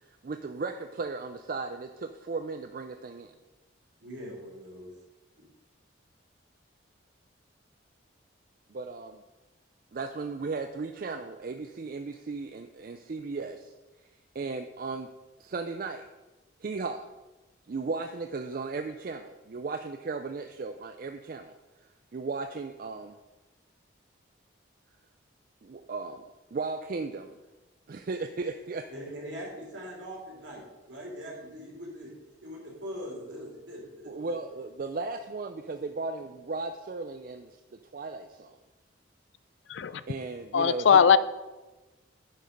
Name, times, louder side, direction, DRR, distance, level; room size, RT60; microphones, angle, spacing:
voice 1, 0.1-3.3 8.7-9.2 9.9-13.7 14.3-15.1 15.4-16.1 16.6-17.1 17.7-21.5 22.1-23.2 25.6-26.2 26.5-27.3 27.9-28.9 34.1-37.6 37.9-38.6 40.1-41.2, right 3 dB, 45° right, 0.4 m, -36 dB
voice 2, 4.0-4.9 28.9-32.1 32.4-34.3, equal, 70° right, 3.2 m, -41 dB
voice 3, 40.5-41.2, left 7 dB, 70° left, 0.4 m, -19 dB
9.9 x 5.2 x 5.3 m
head